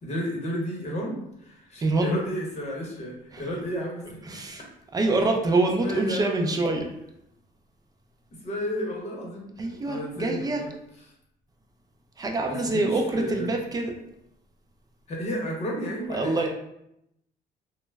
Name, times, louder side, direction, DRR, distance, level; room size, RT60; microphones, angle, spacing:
voice 1, 0.0-4.2 5.8-6.6 8.4-10.7 12.5-13.6 15.1-16.5, equal, 40° left, -1 dB, 0.8 m, -32 dB
voice 2, 1.8-2.1 3.3-3.5 4.3-4.6 4.9-6.9 9.6-10.6 12.2-13.9 16.1-16.5, right 2 dB, 20° right, 3 dB, 0.4 m, -25 dB
2.1 x 2.0 x 3.3 m, 0.81 s
cardioid pair, 110°, 17 cm